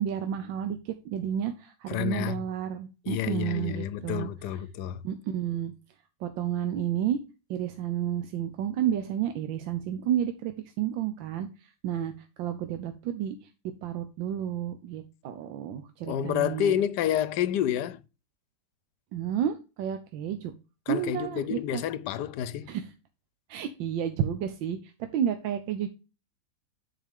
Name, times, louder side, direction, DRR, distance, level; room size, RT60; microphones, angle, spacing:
voice 1, 0.0-4.3 5.0-5.7 6.2-7.2 7.5-13.5 13.8-16.8 19.1-20.5 20.9-21.8 22.6-22.9 23.5-25.9, right 9 dB, 85° right, 1.5 m, -31 dB
voice 2, 1.9-2.4 3.1-5.0 16.1-18.0 20.9-22.7, left 10 dB, 70° left, 1.1 m, -29 dB
9.4 x 4.9 x 3.5 m
omnidirectional pair, 2.0 m